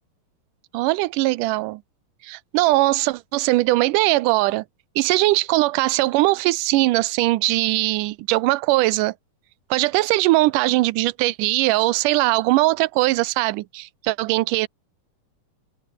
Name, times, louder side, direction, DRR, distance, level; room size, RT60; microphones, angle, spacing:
voice 1, 0.7-1.8 2.2-4.6 5.0-9.1 9.7-14.7, right 19 dB, 80° right, 2.1 m, -20 dB
omnidirectional pair, 3.9 m